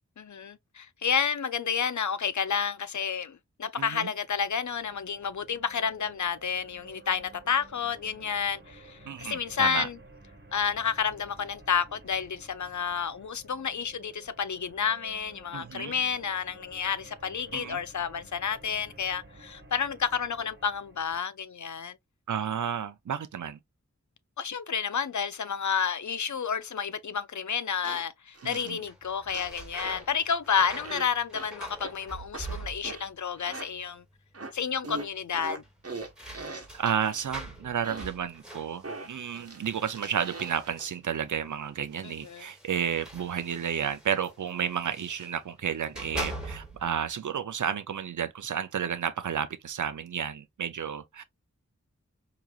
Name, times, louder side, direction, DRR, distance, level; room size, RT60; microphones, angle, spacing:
voice 1, 0.2-10.0 10.5-22.0 24.4-34.0 34.5-35.6 42.0-42.5, left 7 dB, 75° left, 0.5 m, -30 dB
voice 2, 3.8-4.1 9.1-9.9 15.5-15.9 17.5-17.8 22.3-23.6 28.4-28.8 36.5-51.2, right 8 dB, 85° right, 0.5 m, -32 dB
sound 1, 4.2-21.2, right 2 dB, 35° right, 1.3 m, -53 dB
sound 2, 27.8-28.0 28.3-28.7 29.3-29.6 29.8-30.1 30.8-31.1 31.3-31.5 31.8-31.9 32.3-32.5 32.8-33.1 33.4-33.7 34.3-34.5 34.8-37.2 37.8-38.1 38.8-40.7, right 3 dB, 55° right, 1.1 m, -40 dB
sound 3, 28.8-33.2 33.4-34.1 34.4-34.5 35.6-41.0 41.9-45.4 45.8-47.0, right 1 dB, 5° right, 1.9 m, -43 dB
4.9 x 2.9 x 2.3 m
wide cardioid pair, 40°, 29 cm